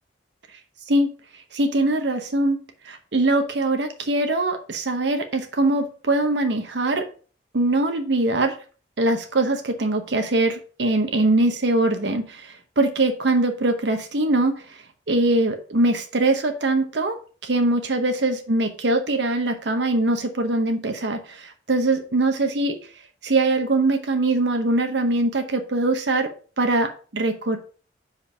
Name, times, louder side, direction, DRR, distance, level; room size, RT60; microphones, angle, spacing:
voice 1, 1.5-2.6 2.8-7.1 7.5-8.5 9.0-17.2 17.4-22.8 23.2-26.3 26.6-27.6, right 2 dB, 65° right, 6 dB, 0.8 m, -22 dB
5.2 x 4.9 x 5.4 m, 0.39 s
head